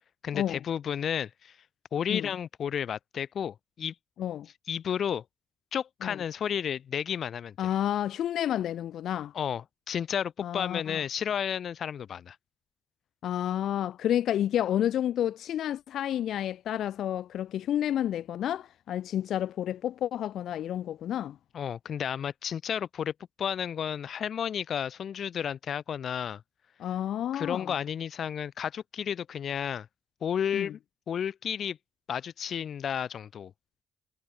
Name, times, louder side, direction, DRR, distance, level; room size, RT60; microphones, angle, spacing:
voice 1, 0.2-1.6 1.9-3.9 4.7-5.2 5.7-7.6 9.3-12.4 21.5-26.4 27.3-29.9 30.2-30.8 31.1-31.8 32.1-33.5, left 8 dB, 60° left, 4.2 m, -32 dB
voice 2, 7.6-9.3 10.4-11.0 13.2-21.4 26.8-27.7 30.5-30.7, left 11 dB, 85° left, 2.5 m, -30 dB
wide cardioid pair, 145°, 0 cm